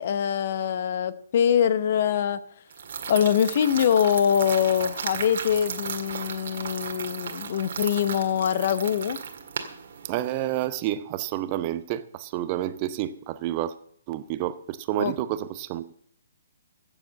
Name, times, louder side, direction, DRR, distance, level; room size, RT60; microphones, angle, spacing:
voice 1, 0.0-2.4 3.1-9.2 15.0-15.1, left 9 dB, 45° left, 0.8 m, -24 dB
sound 1, 2.7-10.7, right 7 dB, 50° right, 1.8 m, -35 dB
voice 2, 10.0-13.7 14.1-15.9, right 13 dB, 30° right, 0.8 m, -29 dB
15.5 x 7.2 x 7.5 m
figure-of-eight pair, 130°, 0 cm